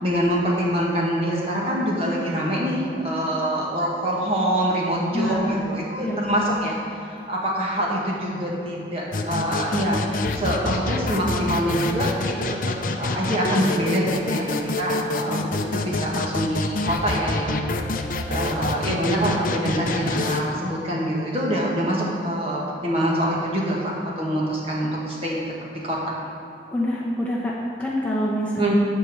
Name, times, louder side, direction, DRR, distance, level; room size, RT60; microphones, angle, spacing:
voice 1, 0.0-6.8 7.3-12.3 12.9-14.5 14.8-17.6 18.3-25.4 25.7-26.0 28.6-28.8, equal, 35° right, -4 dB, 1.8 m, -25 dB
voice 2, 5.1-5.6 6.0-6.4 26.7-27.5 27.8-28.6, left 1 dB, 10° left, -5 dB, 1.0 m, -25 dB
sound 1, 9.1-20.4, left 2 dB, 50° left, 0.6 m, -27 dB
10.5 x 4.5 x 7.6 m, 2.8 s
head